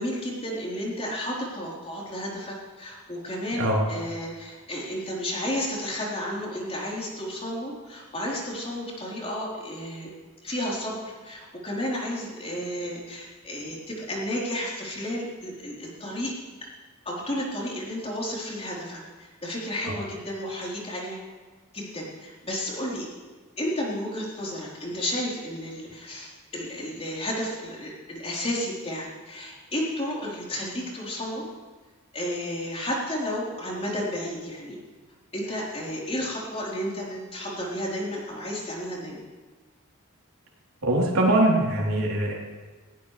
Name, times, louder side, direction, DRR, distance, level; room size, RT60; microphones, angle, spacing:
voice 1, 0.0-10.1 10.4-16.3 17.0-21.2 21.7-23.1 23.6-31.4 32.1-34.8 35.3-39.2, equal, 30° left, -4 dB, 4.1 m, -32 dB
voice 2, 40.8-42.4, right 1 dB, 80° right, -3 dB, 3.7 m, -22 dB
20.0 x 17.0 x 3.4 m, 1.4 s
head